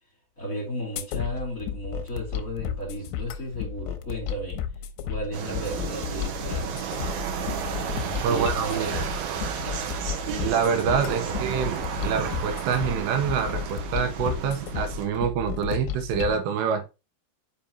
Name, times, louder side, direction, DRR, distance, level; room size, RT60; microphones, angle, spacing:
voice 1, 0.4-4.6 5.0-6.7 8.1-9.0 11.2-11.3, equal, 20° left, 3.5 m, -34 dB
sound 1, 1.0-16.4, left 9 dB, 90° left, 2.9 m, -33 dB
sound 2, 5.3-15.1, right 7 dB, 70° right, 2.7 m, -32 dB
voice 2, 8.2-9.0 10.4-16.9, right 7 dB, 85° right, 3.2 m, -26 dB
6.7 x 5.4 x 2.9 m
omnidirectional pair, 5.0 m